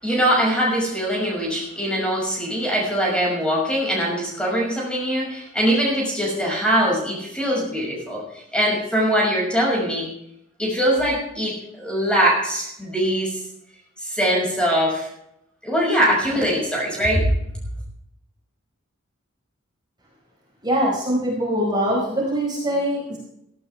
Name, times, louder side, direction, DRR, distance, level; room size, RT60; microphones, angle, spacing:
voice 1, 0.0-10.1 10.6-13.4 14.0-15.1 15.6-17.2, equal, 5° left, -3 dB, 6.1 m, -22 dB
voice 2, 20.6-23.2, equal, 20° right, -4 dB, 4.8 m, -23 dB
17.5 x 15.5 x 3.5 m, 0.77 s
head